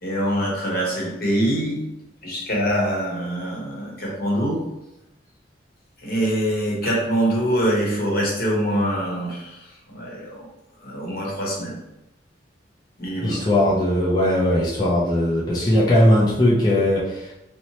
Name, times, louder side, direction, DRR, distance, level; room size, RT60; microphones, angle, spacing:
voice 1, 0.0-1.8 2.2-4.6 6.0-9.6 9.9-10.5 10.8-11.8 13.0-13.4, equal, 55° left, -3 dB, 0.9 m, -24 dB
voice 2, 13.2-17.3, left 1 dB, 25° left, -7 dB, 0.5 m, -19 dB
3.0 x 2.1 x 2.8 m, 0.92 s
head